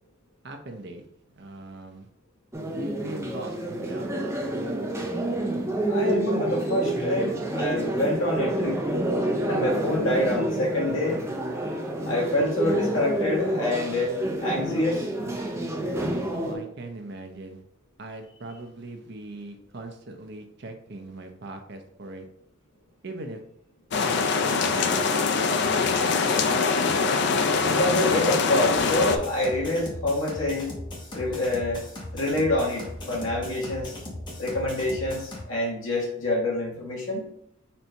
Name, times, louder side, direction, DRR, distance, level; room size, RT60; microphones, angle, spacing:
voice 1, 0.4-1.1 1.3-2.1 2.7-4.3 16.3-17.6 18.0-22.3 23.0-23.4 24.1-25.1, right 2 dB, 55° right, 4 dB, 0.7 m, -40 dB
sound 1, 2.5-16.6, right 1 dB, 15° right, 0.5 m, -28 dB
voice 2, 5.9-8.8 9.5-11.2 12.1-15.1 27.6-30.7 31.1-31.8 32.1-33.9 34.4-37.3, left 1 dB, 80° left, -3 dB, 1.6 m, -26 dB
sound 2, 23.9-29.2, left 4 dB, 55° left, 0.4 m, -23 dB
sound 3, 28.7-35.4, left 1 dB, 25° left, 0.9 m, -38 dB
4.2 x 2.7 x 4.4 m, 0.72 s
head